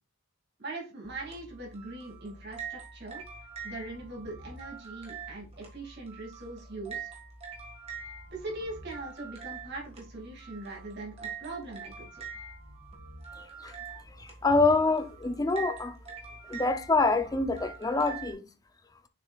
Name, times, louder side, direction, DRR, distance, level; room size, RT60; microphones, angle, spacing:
voice 1, 0.6-3.2 3.6-7.1 8.3-12.2, right 2 dB, 50° right, 2.5 m, -41 dB
sound 1, 1.0-18.3, right 5 dB, 30° right, 1.7 m, -44 dB
voice 2, 13.4-16.0 16.5-18.5, left 3 dB, 15° left, 0.4 m, -27 dB
6.8 x 6.1 x 2.4 m
head